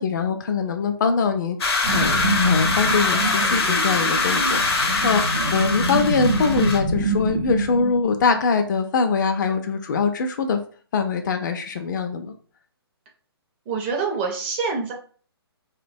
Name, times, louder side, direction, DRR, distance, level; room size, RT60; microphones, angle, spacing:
voice 1, 0.0-10.6 10.9-12.3, left 5 dB, 45° left, 7 dB, 0.4 m, -23 dB
sound 1, 1.6-6.8, left 3 dB, 75° left, 0.7 m, -23 dB
sound 2, 1.8-8.6, right 1 dB, 65° right, 0.7 m, -26 dB
voice 2, 13.7-14.9, right 5 dB, 25° right, 1 dB, 0.4 m, -26 dB
2.8 x 2.1 x 2.5 m, 0.43 s
hypercardioid pair, 145°, 13 cm